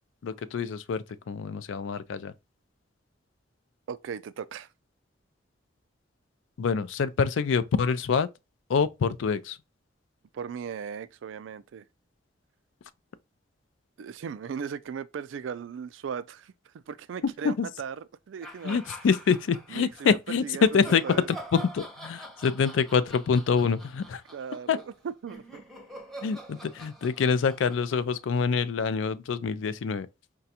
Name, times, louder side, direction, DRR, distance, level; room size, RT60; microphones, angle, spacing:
voice 1, 0.2-2.3 6.6-8.3 8.7-9.6 17.4-17.7 18.6-20.4 20.7-21.0 21.5-24.2 24.7-24.8 26.2-30.1, left 5 dB, 85° left, 0.4 m, -26 dB
voice 2, 3.9-4.7 10.3-11.8 14.0-16.5 16.9-18.8 19.7-21.3 24.3-25.6, right 7 dB, 85° right, 0.3 m, -37 dB
sound 1, 18.4-20.1 20.6-28.8, right 1 dB, ahead, 0.6 m, -45 dB
4.9 x 2.3 x 2.7 m
head